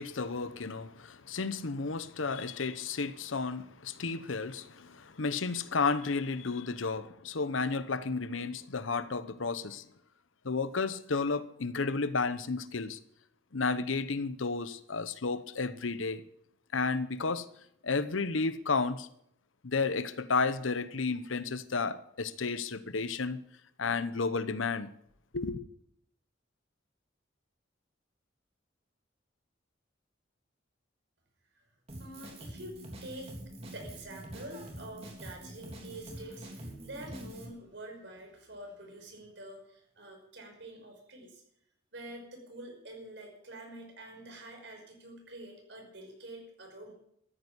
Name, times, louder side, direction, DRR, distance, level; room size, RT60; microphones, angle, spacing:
voice 1, 0.0-9.8 10.4-13.0 13.5-16.2 16.7-17.5 17.8-19.1 19.6-23.4 23.8-24.9 25.3-25.6, left 4 dB, 90° left, 0.9 m, -32 dB
Drum kit, 31.9-37.5, right 1 dB, 30° right, 3.5 m, -45 dB
voice 2, 32.0-32.8 33.0-33.3 33.7-41.4 41.9-46.9, right 1 dB, 65° right, 5.7 m, -47 dB
14.0 x 9.8 x 9.7 m
head